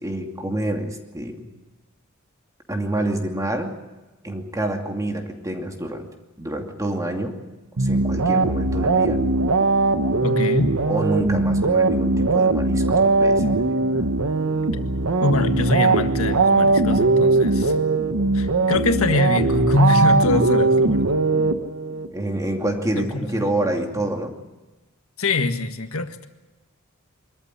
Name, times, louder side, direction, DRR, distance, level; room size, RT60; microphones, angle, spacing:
voice 1, 0.0-1.5 2.7-3.7 4.2-6.1 6.4-7.4 7.8-9.2 10.8-14.0 22.1-24.3, right 1 dB, 15° right, 3 dB, 2.6 m, -27 dB
sound 1, 7.8-22.1, right 3 dB, 80° right, 1.2 m, -20 dB
voice 2, 10.2-10.8 15.2-17.8 18.3-21.2 23.0-23.5 25.2-26.3, left 2 dB, 80° left, 7 dB, 1.7 m, -23 dB
24.5 x 14.0 x 10.0 m, 1.1 s
head